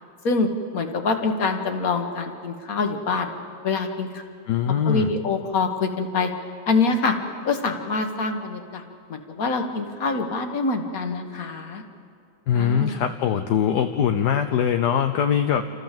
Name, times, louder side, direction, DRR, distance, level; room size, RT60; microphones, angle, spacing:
voice 1, 0.2-3.3 3.6-4.2 4.9-6.3 6.7-7.1 7.5-8.8 9.1-11.8 12.5-13.0, left 4 dB, 55° left, 5 dB, 1.8 m, -25 dB
voice 2, 4.5-5.1 12.5-15.6, left 8 dB, 75° left, 7 dB, 1.3 m, -22 dB
29.0 x 14.0 x 7.5 m, 2.4 s
omnidirectional pair, 1.9 m